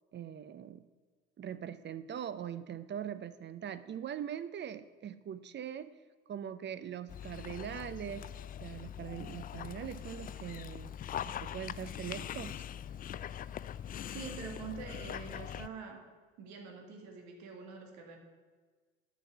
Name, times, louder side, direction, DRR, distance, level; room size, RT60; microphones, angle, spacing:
voice 1, 0.1-0.8 1.4-5.9 6.3-8.3 8.6-10.9 11.3-12.6, right 9 dB, 40° right, 14 dB, 0.7 m, -42 dB
Dog, 7.1-15.7, left 9 dB, 30° left, 0.4 m, -42 dB
voice 2, 14.1-16.1 16.4-18.2, right 5 dB, 70° right, 3 dB, 2.2 m, -45 dB
9.0 x 6.2 x 8.2 m, 1.4 s
hypercardioid pair, 75°, 29 cm